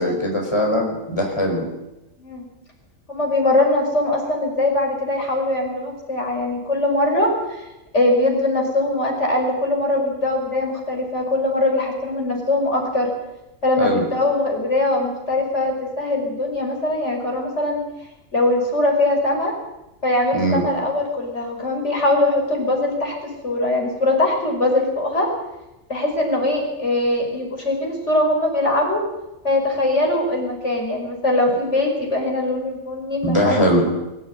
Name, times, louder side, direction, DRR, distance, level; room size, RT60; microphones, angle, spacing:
voice 1, 0.0-1.7 13.8-14.0 20.3-20.6 33.2-33.9, equal, 20° left, 0 dB, 4.9 m, -20 dB
voice 2, 3.1-7.6 7.9-13.1 13.6-17.8 18.3-19.5 20.0-25.3 25.9-29.0 29.4-33.6, left 2 dB, 55° left, 1 dB, 6.1 m, -21 dB
23.5 x 16.5 x 9.6 m, 0.98 s
omnidirectional pair, 1.4 m